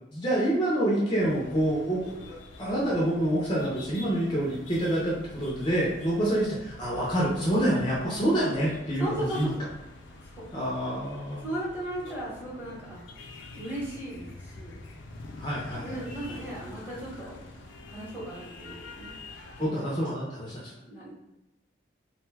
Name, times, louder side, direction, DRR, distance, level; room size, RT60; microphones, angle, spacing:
voice 1, 0.1-9.5 10.5-11.4 15.4-16.0 19.4-20.7, right 1 dB, 25° left, -5 dB, 0.5 m, -27 dB
sound 1, 1.2-19.7, left 2 dB, 80° left, 0.4 m, -46 dB
voice 2, 9.0-9.7 10.2-10.4 11.4-13.0 13.5-14.7 15.8-17.3 17.9-19.1 19.5-19.9 20.9-21.1, right 1 dB, 10° right, -7 dB, 0.9 m, -36 dB
2.6 x 2.2 x 3.3 m, 0.99 s
head